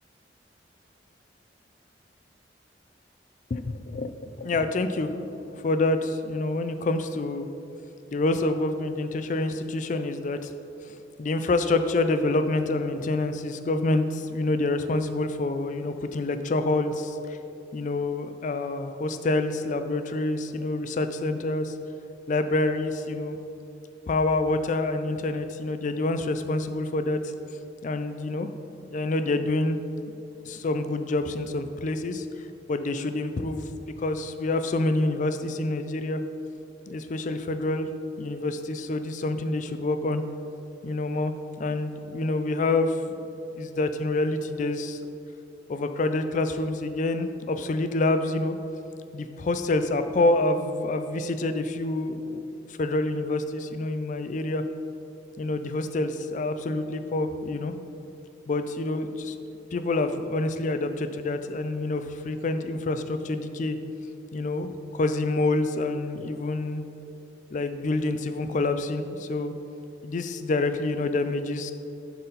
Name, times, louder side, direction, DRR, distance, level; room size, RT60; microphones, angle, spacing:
voice 1, 3.5-4.1 4.4-5.1 5.5-7.5 8.1-10.5 10.9-17.4 17.7-21.7 22.3-23.4 24.1-27.3 27.8-28.5 28.9-29.8 30.5-32.3 32.7-33.6 34.0-36.2 36.9-37.9 38.2-40.2 40.8-43.0 43.2-45.0 45.7-48.6 49.1-52.4 52.7-54.6 55.4-57.7 58.5-59.4 59.7-63.8 64.3-66.9 67.5-69.5 70.0-71.7, left 2 dB, 40° left, 9 dB, 0.4 m, -27 dB
10.5 x 4.1 x 4.0 m, 2.8 s
head